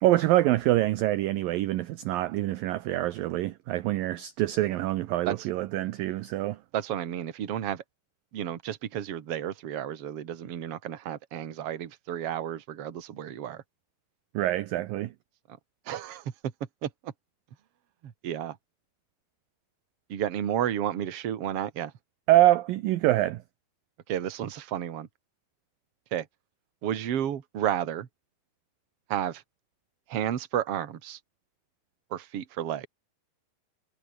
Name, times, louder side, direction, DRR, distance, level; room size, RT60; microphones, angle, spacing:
voice 1, 0.0-6.6 14.3-15.1 22.3-23.4, right 15 dB, 75° right, 2.2 m, -25 dB
voice 2, 6.7-7.8 8.3-13.6 15.9-16.3 16.8-17.1 18.0-18.6 20.1-21.9 24.1-25.1 26.1-26.3 26.8-28.1 29.1-29.4 30.1-31.2 32.1-32.9, right 10 dB, 45° right, 2.1 m, -32 dB
omnidirectional pair, 5.0 m